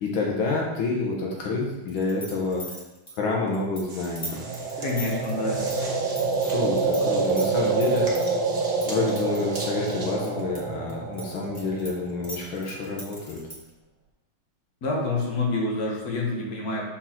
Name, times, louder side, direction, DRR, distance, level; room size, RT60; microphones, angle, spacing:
voice 1, 0.0-2.6 3.2-4.4 6.5-8.2 8.9-13.4, left 3 dB, 80° left, -2 dB, 1.8 m, -28 dB
sound 1, 1.9-7.0 7.3-8.3 8.8-10.6 10.9-13.7, equal, 25° left, 1.3 m, -39 dB
sound 2, 3.9-10.2, right 2 dB, 35° right, 1.1 m, -40 dB
sound 3, 4.3-12.3, right 4 dB, 80° right, 1.6 m, -27 dB
voice 2, 4.8-5.6 14.8-16.9, left 3 dB, 50° left, -2 dB, 1.7 m, -27 dB
4.6 x 4.4 x 5.8 m, 1.1 s
omnidirectional pair, 2.2 m